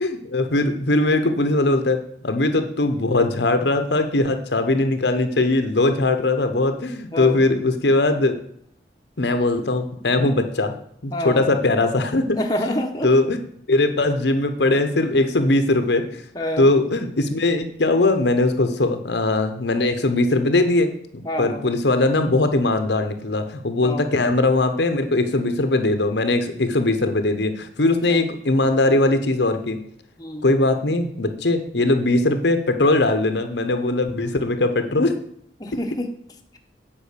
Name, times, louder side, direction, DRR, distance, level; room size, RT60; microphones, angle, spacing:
voice 1, 0.0-2.0 2.2-8.3 9.2-10.7 11.0-12.4 13.0-13.4 13.7-16.2 16.6-20.9 21.4-29.8 30.4-35.1, left 2 dB, 65° left, 8 dB, 0.9 m, -20 dB
voice 2, 7.1-7.5 11.1-11.6 12.4-13.1 16.3-16.7 21.2-21.7 23.8-24.1 28.1-28.3 30.2-30.5 35.6-36.1, left 1 dB, 20° left, 2 dB, 1.0 m, -27 dB
8.4 x 5.3 x 6.7 m, 0.69 s
head